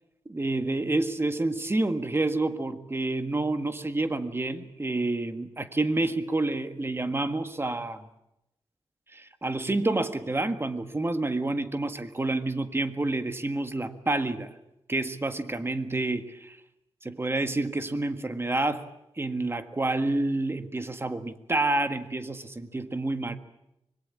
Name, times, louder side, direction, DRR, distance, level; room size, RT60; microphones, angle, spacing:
voice 1, 0.2-8.1 9.1-14.5 14.9-16.6 17.0-18.9 19.2-23.4, right 2 dB, 25° right, 9 dB, 1.7 m, -28 dB
25.0 x 21.5 x 8.7 m, 0.85 s
wide cardioid pair, 120°, 10 cm